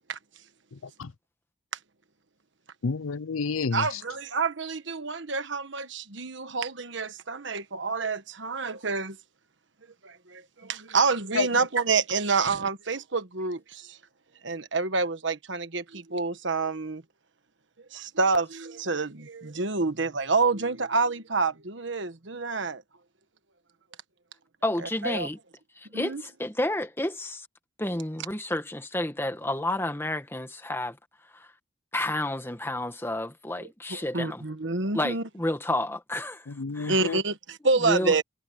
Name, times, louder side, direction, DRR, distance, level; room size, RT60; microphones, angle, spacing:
voice 1, 0.7-1.1 2.8-3.9 11.3-11.5 36.5-37.2, left 4 dB, 90° left, 0.6 m, -30 dB
voice 2, 3.7-9.2 10.0-14.0 14.4-17.0 17.9-22.8 24.8-25.3 25.9-26.2 33.9-35.2 36.9-38.2, right 4 dB, 60° right, 1.4 m, -28 dB
voice 3, 24.6-25.4 25.8-27.5 27.8-31.0 31.3-31.5 31.9-34.4 34.9-36.5 36.7-37.1 37.8-38.1, left 1 dB, 10° left, 1.6 m, -30 dB
head